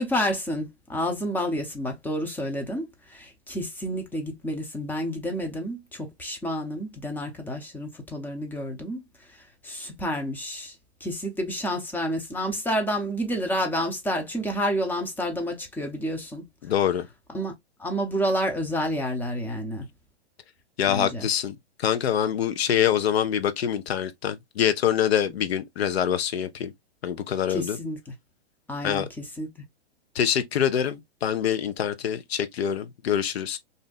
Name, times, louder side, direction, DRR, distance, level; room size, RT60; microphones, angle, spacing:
voice 1, 0.0-9.0 9.3-10.7 11.0-16.4 17.3-17.5 17.8-19.9 20.9-21.3 27.5-28.1 28.7-29.5, equal, 5° left, 0.6 m, -29 dB
voice 2, 16.6-17.1 20.8-26.7 27.0-27.8 28.8-29.1 30.2-33.6, left 9 dB, 70° left, 0.7 m, -25 dB
2.6 x 2.2 x 3.8 m
hypercardioid pair, 115°, 33 cm